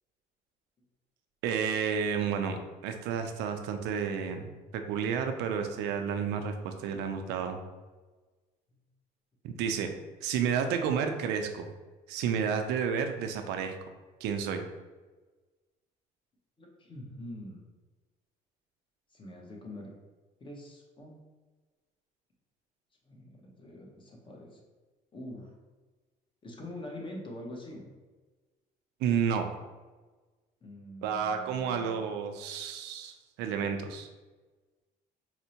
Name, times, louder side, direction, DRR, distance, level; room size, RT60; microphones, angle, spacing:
voice 1, 1.4-7.6 9.4-9.9 10.2-11.7 12.1-13.8 14.2-14.6 29.0-29.5 31.0-34.1, right 7 dB, 90° right, 6 dB, 0.4 m, -31 dB
voice 2, 16.6-17.6 19.1-19.9 20.4-21.2 23.1-24.6 25.1-25.5 26.4-27.8 30.6-32.1, left 1 dB, 30° left, 0 dB, 0.8 m, -44 dB
4.4 x 2.1 x 2.8 m, 1.3 s
cardioid pair, 110°, 17 cm